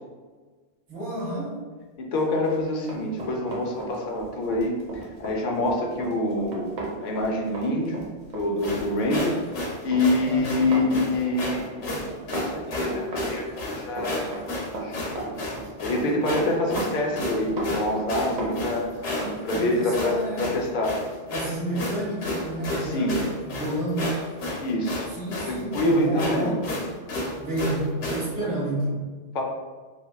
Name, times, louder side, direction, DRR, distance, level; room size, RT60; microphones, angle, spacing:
voice 1, 0.9-1.6 10.3-10.5 19.5-20.5 21.3-24.3 25.1-26.6 27.4-29.0, right 1 dB, 10° right, -7 dB, 0.6 m, -30 dB
voice 2, 2.0-6.7 7.0-8.0 8.3-9.4 9.8-11.7 12.5-13.4 13.8-14.3 14.8-15.0 15.8-18.9 19.4-21.0 22.8-23.2 24.6-25.1 25.4-26.5 29.3-29.4, left 1 dB, 60° left, 0 dB, 0.6 m, -26 dB
Run, 2.3-19.4 19.7-19.9, right 2 dB, 50° right, 0.6 m, -36 dB
sound 1, 8.6-28.3, left 1 dB, 75° left, 0.9 m, -32 dB
2.7 x 2.3 x 2.2 m, 1.4 s
omnidirectional pair, 1.1 m